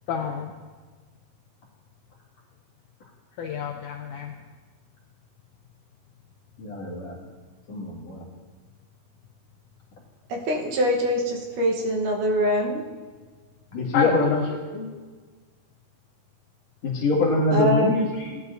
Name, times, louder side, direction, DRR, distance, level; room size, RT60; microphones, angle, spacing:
voice 1, 0.1-0.5 3.4-4.4 13.9-14.6, left 6 dB, 80° left, 3 dB, 1.8 m, -29 dB
voice 2, 6.6-7.1 7.7-8.2 13.7-14.4 14.7-14.9 16.8-18.4, left 2 dB, 50° left, -4 dB, 3.0 m, -24 dB
voice 3, 10.3-12.8 17.5-17.9, equal, 70° right, 0 dB, 2.5 m, -23 dB
18.0 x 11.0 x 2.6 m, 1.4 s
omnidirectional pair, 4.2 m